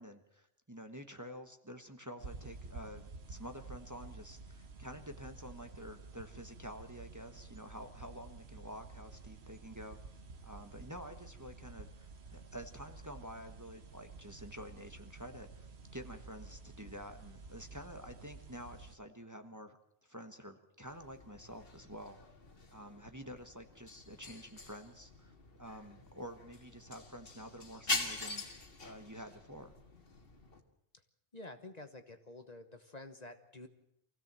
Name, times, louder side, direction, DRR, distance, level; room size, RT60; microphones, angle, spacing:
voice 1, 0.0-10.0 10.4-22.2 22.7-28.4 28.8-29.7, equal, 15° right, 5 dB, 1.3 m, -49 dB
sound 1, 2.2-19.0, right 3 dB, 75° right, 1.5 m, -51 dB
sound 2, 20.8-30.6, left 2 dB, 60° left, 2.0 m, -44 dB
voice 2, 31.3-33.7, left 2 dB, 40° left, 7 dB, 1.2 m, -49 dB
24.5 x 16.0 x 7.6 m, 0.77 s
omnidirectional pair, 1.1 m